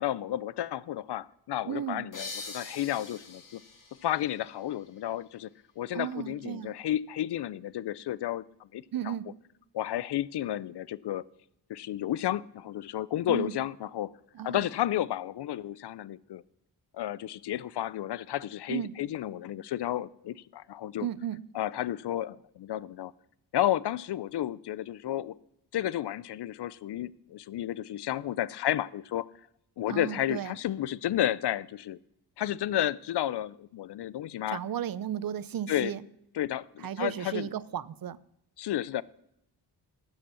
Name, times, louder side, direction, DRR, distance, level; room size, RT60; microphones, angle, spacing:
voice 1, 0.0-3.6 4.0-5.5 5.8-8.4 8.7-9.1 9.7-11.2 11.7-14.1 14.4-16.4 16.9-21.1 21.5-23.1 23.5-25.4 25.7-29.3 29.8-32.0 32.4-34.6 35.7-35.9 36.4-37.5 38.6-39.0, left 12 dB, 70° left, 21 dB, 0.5 m, -32 dB
voice 2, 1.6-2.0 5.9-6.7 8.9-9.4 13.3-13.6 14.3-14.6 18.7-18.9 21.0-21.4 29.9-30.6 34.5-36.0 36.8-38.2, right 10 dB, 55° right, 19 dB, 0.6 m, -34 dB
sound 1, 2.1-5.5, left 3 dB, 50° left, 2.1 m, -44 dB
12.5 x 8.0 x 6.9 m, 0.79 s
wide cardioid pair, 110°, 42 cm